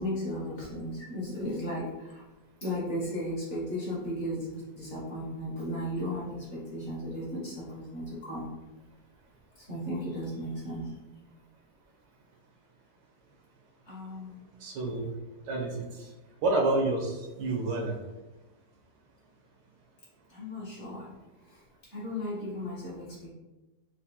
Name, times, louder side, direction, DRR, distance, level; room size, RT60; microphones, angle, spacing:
voice 1, 0.0-2.2 2.6-8.5 9.6-10.9 13.9-14.4 20.3-21.1 21.5-21.6 21.9-23.3, equal, 45° left, -7 dB, 1.1 m, -35 dB
voice 2, 14.6-15.1 15.5-16.1 16.4-17.9, right 2 dB, 85° right, 0 dB, 1.4 m, -29 dB
4.4 x 2.1 x 2.7 m, 1.1 s
omnidirectional pair, 1.9 m